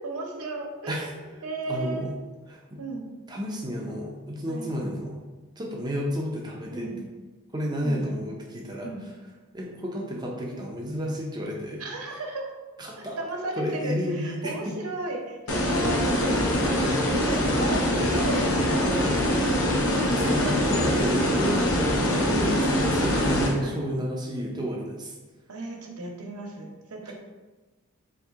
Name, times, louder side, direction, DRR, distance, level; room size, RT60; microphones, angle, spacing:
voice 1, 0.0-2.0 2.8-3.1 4.5-4.7 6.7-7.0 7.8-8.0 8.8-9.0 11.8-12.5 13.2-16.9 17.3-19.4 20.3-21.6 23.6-23.8 25.5-27.1, right 2 dB, 80° right, 1 dB, 0.8 m, -35 dB
voice 2, 1.7-2.1 2.5-2.8 3.3-5.2 5.6-6.9 7.5-9.1 9.5-11.9 12.8-13.2 13.6-14.7 16.8-17.0 20.2-21.6 22.1-25.1 27.0-27.1, equal, 20° right, -2 dB, 0.5 m, -31 dB
sound 1, 15.5-23.5, left 1 dB, 80° left, 0.8 m, -23 dB
4.0 x 2.8 x 3.5 m, 1.2 s
head